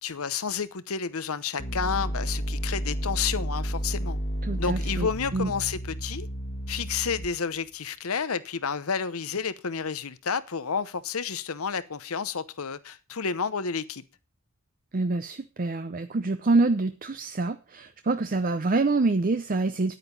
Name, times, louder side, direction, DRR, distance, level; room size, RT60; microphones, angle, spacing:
voice 1, 0.0-4.2 4.6-6.3 6.7-14.0, left 6 dB, 75° left, 0.9 m, -30 dB
War of the worlds Tripod horn, 1.6-7.6, equal, 45° left, 1.5 m, -31 dB
voice 2, 4.5-5.5 14.9-19.9, right 3 dB, 40° right, 0.6 m, -26 dB
10.0 x 9.2 x 5.4 m
head